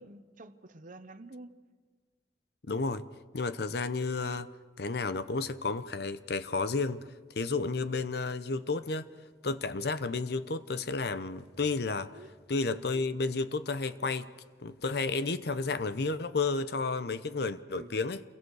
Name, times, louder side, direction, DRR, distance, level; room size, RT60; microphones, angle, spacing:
voice 1, 0.0-1.5 12.1-12.4 17.7-18.0, right 2 dB, 50° right, 1.0 m, -49 dB
voice 2, 2.7-3.0 3.3-4.5 4.8-7.0 7.4-9.1 9.4-12.1 12.5-14.3 14.6-18.2, left 3 dB, 65° left, 0.8 m, -32 dB
28.5 x 22.5 x 4.8 m
head